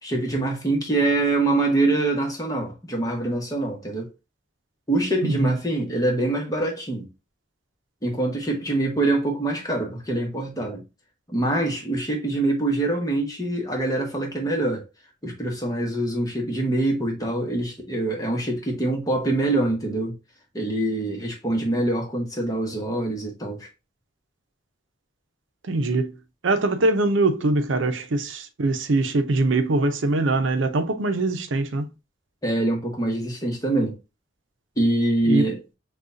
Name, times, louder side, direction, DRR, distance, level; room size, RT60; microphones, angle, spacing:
voice 1, 0.0-4.1 4.9-7.1 8.0-10.8 11.3-14.8 15.2-20.2 20.5-23.7 32.4-34.0 34.8-35.6, right 2 dB, 20° left, 1.1 m, -24 dB
voice 2, 5.2-5.6 25.6-26.2 26.4-31.9 35.3-35.5, right 2 dB, 85° right, 0.6 m, -23 dB
6.1 x 2.4 x 2.6 m
head